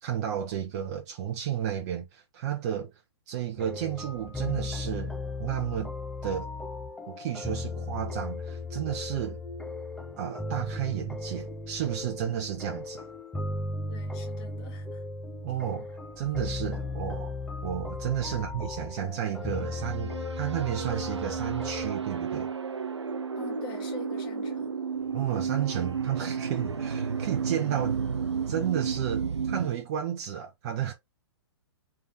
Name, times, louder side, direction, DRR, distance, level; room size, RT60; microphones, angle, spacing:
voice 1, 0.0-2.9 3.3-5.9 6.2-6.5 7.1-9.4 10.2-13.1 15.4-15.9 16.2-17.3 17.6-22.5 25.1-28.0 28.5-30.9, right 10 dB, 40° right, 0.8 m, -32 dB
sound 1, 3.6-21.9, left 3 dB, 5° left, 0.4 m, -36 dB
voice 2, 13.9-15.0 18.3-18.6 23.4-24.8, left 4 dB, 30° left, 1.8 m, -45 dB
sound 2, 19.4-29.7, right 6 dB, 85° right, 0.5 m, -32 dB
3.4 x 3.3 x 2.7 m
figure-of-eight pair, 115°, 14 cm